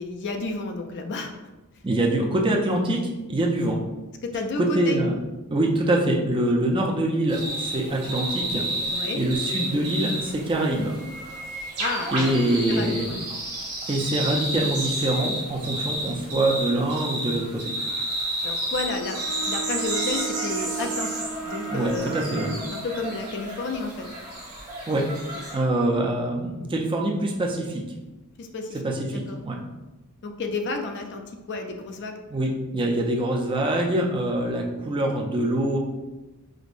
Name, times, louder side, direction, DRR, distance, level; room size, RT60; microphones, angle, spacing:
voice 1, 0.0-1.3 4.2-5.0 8.9-9.2 11.8-12.3 12.7-13.2 18.4-22.2 22.7-24.1 28.4-28.8 29.1-29.4 30.2-32.2, left 3 dB, 50° left, 4 dB, 0.4 m, -31 dB
voice 2, 1.8-3.8 4.6-5.1 5.5-8.7 9.1-10.9 12.1-13.1 13.9-17.7 21.7-22.5 24.9-25.1 25.5-27.8 28.8-29.6 32.3-35.8, right 1 dB, 20° right, 0 dB, 0.4 m, -24 dB
sound 1, 7.3-25.6, right 1 dB, 80° right, 1.2 m, -31 dB
Bowed string instrument, 18.8-22.7, right 7 dB, 55° right, 0.8 m, -35 dB
5.0 x 2.0 x 2.5 m, 1.1 s
head